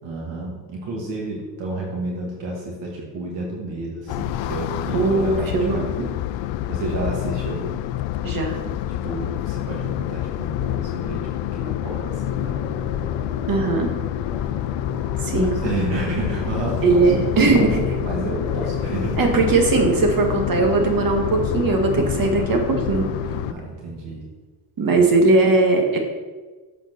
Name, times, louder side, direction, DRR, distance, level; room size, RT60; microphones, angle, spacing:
voice 1, 0.0-5.9 6.7-7.7 8.9-12.6 15.3-17.1 17.6-19.4 23.5-24.2 25.0-25.1, right 2 dB, 65° right, -2 dB, 2.3 m, -30 dB
sound 1, 4.1-23.5, left 12 dB, 75° left, 0.6 m, -27 dB
voice 2, 4.9-5.9 8.2-8.6 13.5-13.9 15.2-15.6 16.8-17.8 19.2-23.1 24.8-26.0, right 3 dB, 45° right, 3 dB, 2.0 m, -19 dB
sound 2, 11.1-23.4, right 1 dB, 10° right, 3.1 m, -36 dB
8.1 x 5.2 x 6.1 m, 1.3 s
cardioid pair, 95°, 46 cm